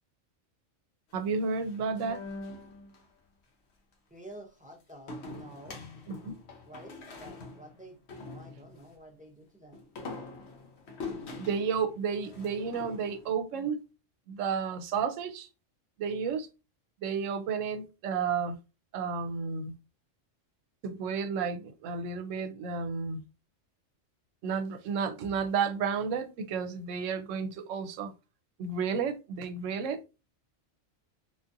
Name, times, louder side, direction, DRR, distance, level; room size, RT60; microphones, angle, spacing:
sound 1, 1.1-3.0 5.1-8.9 9.7-13.3, left 3 dB, 60° left, 1.0 m, -44 dB
voice 1, 1.1-2.2 6.1-6.3 11.4-13.8 14.3-15.5 16.0-16.5 17.0-18.6 18.9-19.7 20.8-23.2 24.4-28.1 28.6-30.0, right 6 dB, 75° right, 0.9 m, -32 dB
voice 2, 4.1-5.8 6.6-9.8, right 1 dB, 10° right, 0.4 m, -50 dB
3.7 x 2.4 x 2.6 m
omnidirectional pair, 1.3 m